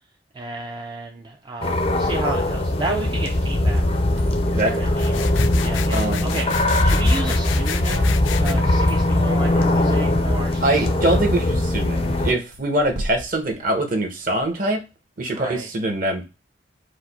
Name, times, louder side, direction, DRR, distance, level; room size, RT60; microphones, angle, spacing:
voice 1, 0.3-4.0 4.6-5.2 5.6-6.6 6.8-11.0 15.3-15.7, right 2 dB, 25° right, 1 dB, 0.4 m, -32 dB
sound 1, 1.6-12.3, left 1 dB, 30° left, 0.5 m, -20 dB
sound 2, 4.2-14.5, right 1 dB, 75° right, 1.2 m, -42 dB
sound 3, 4.9-8.5, left 9 dB, 85° left, 0.4 m, -32 dB
voice 2, 5.9-6.3 10.6-14.8 15.2-16.2, right 1 dB, 45° right, 4 dB, 0.9 m, -23 dB
4.8 x 2.1 x 4.0 m, 0.27 s
head